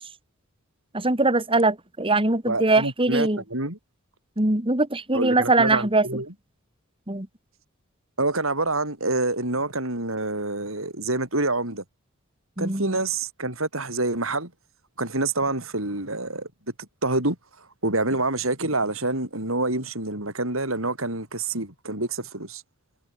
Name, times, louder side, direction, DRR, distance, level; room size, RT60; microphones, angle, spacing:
voice 1, 0.9-3.4 4.4-6.2 7.1-7.3 12.6-13.0, right 2 dB, 25° right, 2.6 m, -22 dB
voice 2, 2.5-3.8 5.1-6.3 8.2-11.8 12.6-14.5 15.0-16.5 17.0-22.6, right 2 dB, 70° right, 7.9 m, -27 dB
head